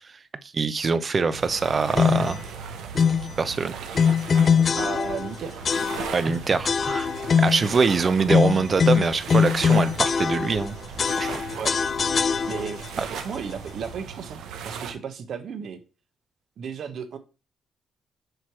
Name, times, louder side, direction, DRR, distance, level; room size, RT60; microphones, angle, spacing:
voice 1, 0.5-2.4 3.0-3.1 3.4-3.7 6.1-7.1 7.4-10.8 11.2-11.4, right 4 dB, 40° right, 0.7 m, -23 dB
sound 1, 1.3-14.9, right 6 dB, 85° right, 1.0 m, -38 dB
sound 2, 2.0-2.4 3.0-3.3 3.9-5.3 5.6-6.3 6.6-7.7 8.3-10.7 11.0-12.9, left 6 dB, 45° left, 0.3 m, -22 dB
voice 2, 4.8-5.6 11.6-11.7 12.5-15.8 16.6-17.2, right 7 dB, 60° right, 1.1 m, -34 dB
7.8 x 3.1 x 6.2 m
cardioid pair, 90°, 0 cm